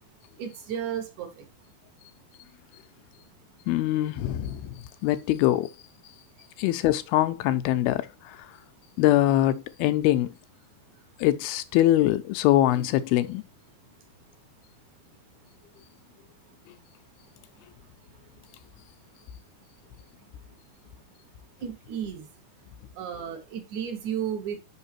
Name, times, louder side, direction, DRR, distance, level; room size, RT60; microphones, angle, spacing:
voice 1, 0.4-1.5 21.6-22.3 23.0-24.6, right 8 dB, 65° right, 2.0 m, -33 dB
voice 2, 3.7-4.7 5.0-5.7 6.6-8.4 9.0-10.3 11.2-13.5, left 14 dB, 90° left, 2.5 m, -23 dB
5.7 x 5.5 x 4.3 m
omnidirectional pair, 4.3 m